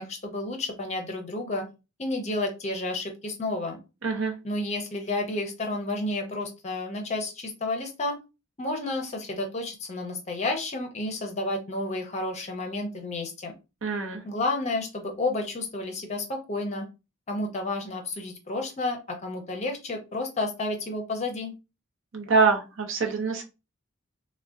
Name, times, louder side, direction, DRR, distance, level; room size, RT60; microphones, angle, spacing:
voice 1, 0.0-1.7 2.0-3.8 4.4-8.2 8.6-13.5 14.2-16.9 17.3-21.5, left 2 dB, 35° left, 3 dB, 0.5 m, -31 dB
voice 2, 4.0-4.3 13.8-14.2 22.1-23.4, right 4 dB, 75° right, 3 dB, 0.7 m, -24 dB
3.5 x 2.1 x 2.4 m, 0.28 s
head